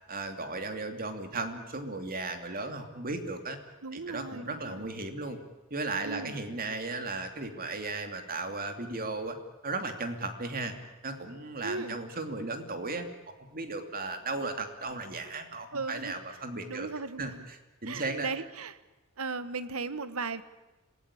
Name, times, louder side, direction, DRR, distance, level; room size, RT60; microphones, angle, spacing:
voice 1, 0.1-3.6 3.9-5.4 5.7-9.4 9.6-10.7 11.0-13.1 13.5-16.9 17.2-17.3 17.8-18.3, right 3 dB, 40° right, 7 dB, 2.9 m, -35 dB
voice 2, 3.8-4.9 6.0-6.4 11.6-12.0 15.7-16.4 16.7-17.5 17.8-18.8 19.2-20.4, right 4 dB, 80° right, 14 dB, 1.4 m, -37 dB
26.0 x 18.0 x 10.0 m, 1.1 s
head